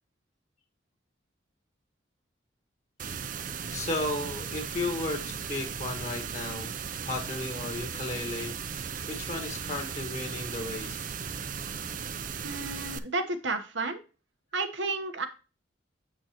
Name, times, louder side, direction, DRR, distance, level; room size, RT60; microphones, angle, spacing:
sound 1, 3.0-13.0, right 6 dB, 45° right, 0.5 m, -37 dB
voice 1, 3.6-6.7 7.0-11.1, left 2 dB, 35° left, 4 dB, 1.4 m, -34 dB
voice 2, 12.4-14.0 14.5-15.3, right 3 dB, 75° right, 7 dB, 1.2 m, -32 dB
7.8 x 6.3 x 2.9 m, 0.33 s
head